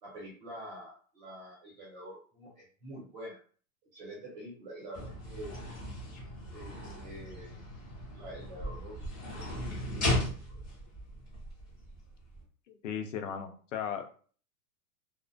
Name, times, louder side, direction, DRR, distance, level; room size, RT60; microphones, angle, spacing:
voice 1, 0.0-3.4 3.9-5.6 6.5-7.6 8.1-8.9 9.3-10.6, equal, 30° right, -4 dB, 0.8 m, -46 dB
sound 1, 4.9-12.4, left 1 dB, 15° left, 0.5 m, -37 dB
voice 2, 12.7-14.1, left 8 dB, 60° left, 5 dB, 0.5 m, -37 dB
2.3 x 2.1 x 2.5 m, 0.43 s
supercardioid pair, 175°, 44 cm